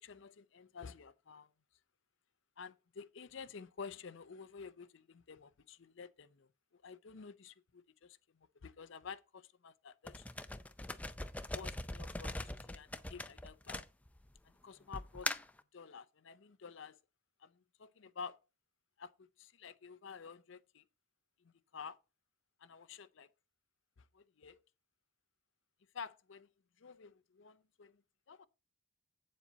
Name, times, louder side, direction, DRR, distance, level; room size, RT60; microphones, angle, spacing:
voice 1, 0.0-1.5 2.6-10.3 11.5-13.8 14.4-15.3 15.7-17.0 17.4-18.4 19.0-20.8 21.7-22.0 22.6-23.3 24.0-24.6 25.9-26.5 26.8-28.0 28.3-28.5, left 5 dB, 60° left, 0.5 m, -51 dB
sound 1, 10.1-14.4 14.9-15.6, left 2 dB, 5° left, 0.4 m, -41 dB
8.4 x 7.3 x 4.0 m
head